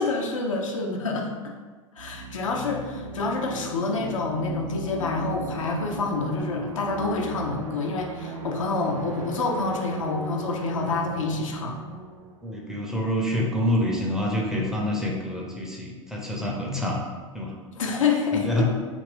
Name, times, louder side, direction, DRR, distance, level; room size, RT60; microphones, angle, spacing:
voice 1, 0.0-1.5 2.0-11.8 17.7-18.6, left 3 dB, 70° left, 1 dB, 0.5 m, -27 dB
sound 1, 2.0-13.5, right 2 dB, 75° right, 0.5 m, -38 dB
voice 2, 12.4-17.0 17.3-17.5 18.3-18.6, left 1 dB, 5° right, -3 dB, 0.5 m, -27 dB
2.8 x 2.5 x 3.2 m, 1.4 s
figure-of-eight pair, 85°, 17 cm